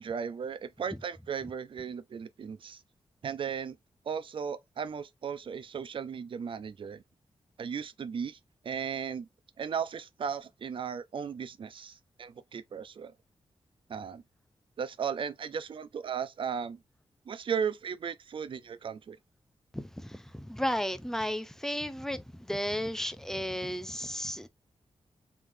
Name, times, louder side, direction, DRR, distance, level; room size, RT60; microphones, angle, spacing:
voice 1, 0.0-2.8 3.2-3.8 4.1-7.0 7.6-8.4 8.6-9.3 9.6-13.1 13.9-14.2 14.8-16.8 17.3-19.2, right 7 dB, 55° right, 0.5 m, -36 dB
voice 2, 19.7-24.5, equal, 5° left, 0.5 m, -34 dB
3.6 x 3.3 x 2.6 m
wide cardioid pair, 110°, 10 cm